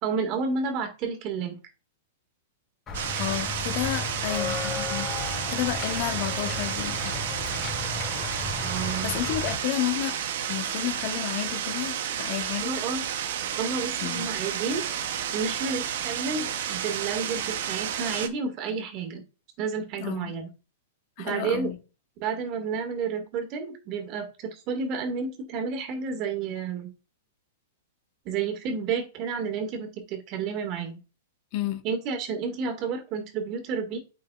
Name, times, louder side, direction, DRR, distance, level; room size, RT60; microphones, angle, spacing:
voice 1, 0.0-1.6 8.6-9.2 12.6-13.0 13.5-19.2 19.6-20.5 21.2-21.7 22.2-26.9 28.3-31.0 31.8-34.0, right 5 dB, 40° right, 1.9 m, -31 dB
Walk footsteps / Bell, 2.9-9.5, left 3 dB, 25° left, 3.4 m, -34 dB
sound 1, 2.9-18.3, right 9 dB, 65° right, 0.9 m, -31 dB
voice 2, 3.1-7.0 9.0-10.2 10.5-12.8 14.0-14.3 20.0-20.3 21.2-21.8 31.5-31.8, left 13 dB, 50° left, 1.1 m, -31 dB
8.5 x 5.5 x 2.4 m
hypercardioid pair, 110°, 0 cm